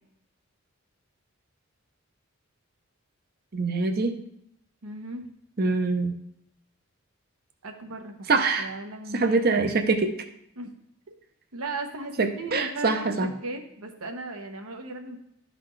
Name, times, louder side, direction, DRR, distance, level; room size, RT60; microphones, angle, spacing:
voice 1, 3.5-4.1 5.6-6.1 8.3-8.7 9.1-10.1 12.2-13.3, right 3 dB, 45° right, 7 dB, 0.6 m, -24 dB
voice 2, 4.8-5.3 7.6-8.3 8.6-9.4 10.6-10.8 11.5-13.2 13.4-15.2, right 2 dB, 80° right, 4 dB, 1.0 m, -36 dB
12.0 x 4.1 x 3.2 m, 0.76 s
head